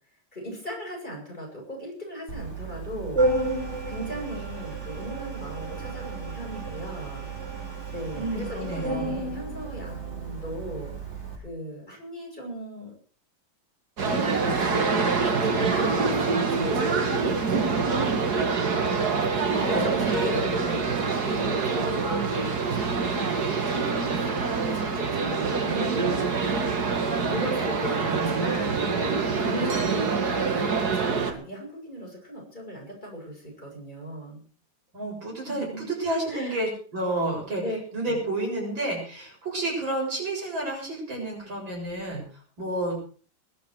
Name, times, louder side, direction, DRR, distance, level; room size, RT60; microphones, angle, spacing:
voice 1, 0.3-7.2 7.9-10.9 11.4-12.9 14.0-18.5 19.6-23.1 23.7-26.0 27.3-28.9 29.4-30.1 30.5-34.4 35.5-35.9 36.3-36.6 37.6-37.8 38.0-38.2, equal, 25° left, -2 dB, 7.9 m, -37 dB
Organ, 2.3-11.4, right 2 dB, 35° right, 4.0 m, -32 dB
voice 2, 8.1-9.3 19.5-20.8 25.5-26.2 28.1-28.5 34.9-37.6 37.9-42.2 42.6-42.9, right 2 dB, 80° right, -1 dB, 8.1 m, -30 dB
sound 1, 14.0-31.3, right 4 dB, 55° right, 2.3 m, -25 dB
21.0 x 12.0 x 4.9 m, 0.42 s
omnidirectional pair, 2.1 m